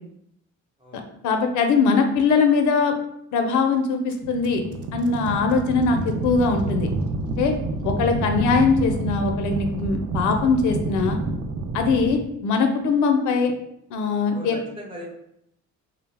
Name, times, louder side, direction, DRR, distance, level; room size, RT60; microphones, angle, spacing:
voice 1, 1.2-2.9 3.3-4.6 4.9-6.9 7.4-7.5 7.8-11.2 11.7-13.5 13.9-14.6, left 4 dB, 80° left, 5 dB, 0.5 m, -21 dB
sound 1, 4.1-12.2, right 3 dB, 50° right, 0.4 m, -28 dB
voice 2, 14.3-15.0, equal, 15° right, -3 dB, 0.8 m, -39 dB
2.4 x 2.0 x 3.2 m, 0.74 s
cardioid pair, 90°, 30 cm